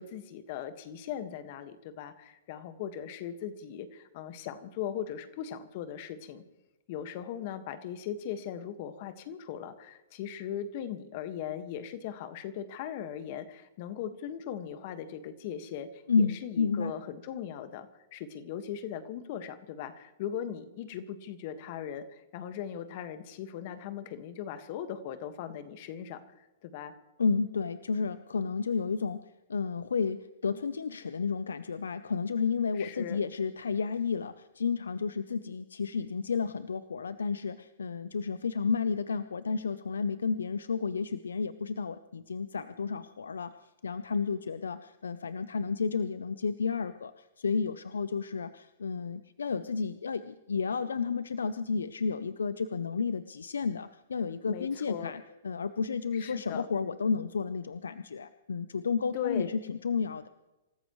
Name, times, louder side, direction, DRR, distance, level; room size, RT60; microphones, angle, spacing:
voice 1, 0.0-6.4 6.9-26.9 32.8-33.2 54.4-55.1 56.1-56.7 59.1-59.5, left 9 dB, 50° left, 9 dB, 1.6 m, -39 dB
voice 2, 16.1-16.9 27.2-29.2 29.5-43.5 43.8-60.3, left 5 dB, 90° left, 13 dB, 0.6 m, -31 dB
27.0 x 14.5 x 3.2 m, 1.0 s
hypercardioid pair, 135°, 0 cm